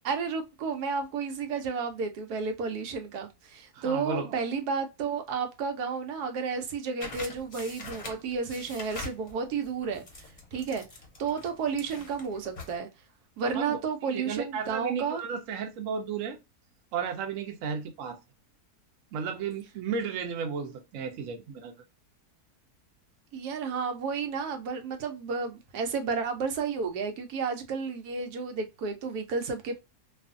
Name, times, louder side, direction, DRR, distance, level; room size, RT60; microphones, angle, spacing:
voice 1, 0.0-10.0 10.5-10.9 11.2-12.9 13.4-15.2 23.3-29.8, right 5 dB, 85° right, 1.1 m, -32 dB
voice 2, 3.7-4.4 13.5-13.8 14.1-16.4 16.9-18.2 19.1-21.7, right 6 dB, 65° right, 0.9 m, -34 dB
sound 1, 7.0-12.8, left 3 dB, 40° left, 0.7 m, -44 dB
2.6 x 2.4 x 2.4 m
omnidirectional pair, 1.6 m